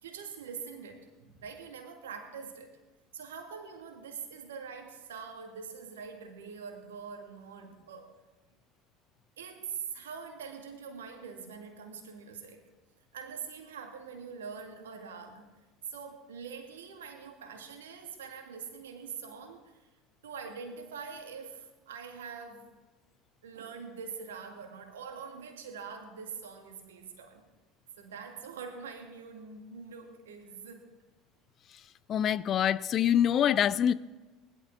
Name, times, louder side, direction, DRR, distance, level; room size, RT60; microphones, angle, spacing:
voice 1, 0.0-2.8 3.1-8.2 9.4-12.6 13.1-15.6 15.9-19.9 20.2-22.7 23.4-27.5 28.0-30.9, right 6 dB, 80° right, 2.0 m, -44 dB
voice 2, 32.1-33.9, left 9 dB, 45° left, 0.5 m, -25 dB
19.5 x 12.0 x 3.7 m
hypercardioid pair, 70°, 0 cm